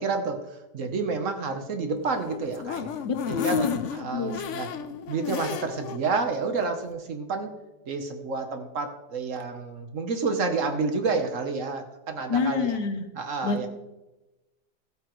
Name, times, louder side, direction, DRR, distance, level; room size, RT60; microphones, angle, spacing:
voice 1, 0.0-2.9 3.3-4.7 5.1-7.5 7.8-12.8 13.1-13.7, right 4 dB, 55° right, 6 dB, 1.2 m, -29 dB
sound 1, 2.0-6.0 6.4-6.5 6.8-6.9, left 7 dB, 60° left, 0.8 m, -34 dB
voice 2, 3.0-3.8 4.1-4.4 12.3-13.1 13.4-13.7, left 5 dB, 85° left, 7 dB, 1.7 m, -27 dB
15.0 x 8.8 x 3.1 m, 1.0 s
omnidirectional pair, 1.8 m